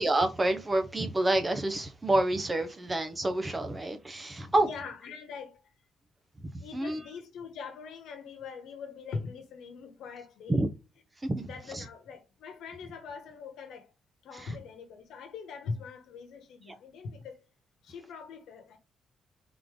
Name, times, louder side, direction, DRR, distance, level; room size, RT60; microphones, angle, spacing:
voice 1, 0.0-4.7 6.7-7.0 10.5-10.7 11.2-11.8 14.3-14.5 16.7-16.8, right 1 dB, 20° right, 0.8 m, -28 dB
voice 2, 4.5-5.6 6.6-10.7 11.4-13.9 14.2-17.4 17.8-18.8, left 5 dB, 80° left, 1.1 m, -42 dB
3.9 x 3.2 x 3.6 m
cardioid pair, 90°, 0 cm